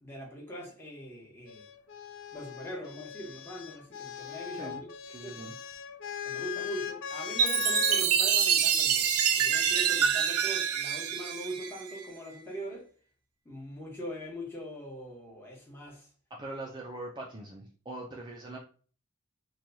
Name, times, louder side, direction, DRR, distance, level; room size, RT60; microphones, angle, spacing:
voice 1, 0.0-1.6 2.3-4.7 5.2-5.5 6.2-12.9 13.4-16.1, equal, 10° left, 1.0 m, -42 dB
sound 1, 1.5-8.1 9.2-9.8, left 7 dB, 60° left, 0.4 m, -39 dB
voice 2, 4.6-5.6 16.3-18.6, right 2 dB, 20° right, 0.4 m, -42 dB
Chime, 7.4-12.1, right 8 dB, 85° right, 0.5 m, -26 dB
2.9 x 2.3 x 3.9 m
head